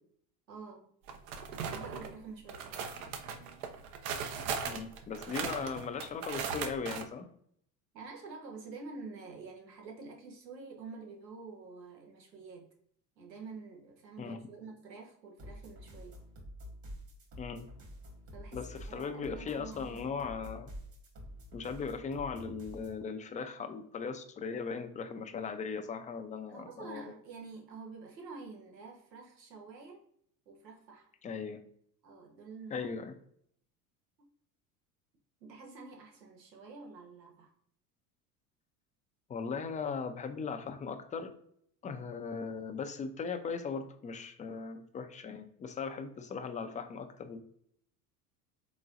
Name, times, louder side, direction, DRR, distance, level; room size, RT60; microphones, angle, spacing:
voice 1, 0.5-0.9 1.5-2.9 7.9-12.7 13.2-16.2 18.3-20.4 26.5-30.1 30.5-31.1 32.0-32.9 34.2-34.3 35.4-37.5, right 4 dB, 90° right, 1.1 m, -48 dB
sound 1, 1.1-2.1 2.5-7.0, right 6 dB, 65° right, 0.8 m, -38 dB
voice 2, 4.7-7.3 14.2-14.4 17.4-17.7 18.5-20.7 21.5-27.0 31.2-31.6 32.7-33.0 39.3-41.3 41.8-47.4, left 5 dB, 15° left, 0.4 m, -38 dB
sound 2, 15.4-23.0, equal, 45° right, 1.7 m, -48 dB
4.0 x 3.8 x 2.5 m
hypercardioid pair, 80°, 49 cm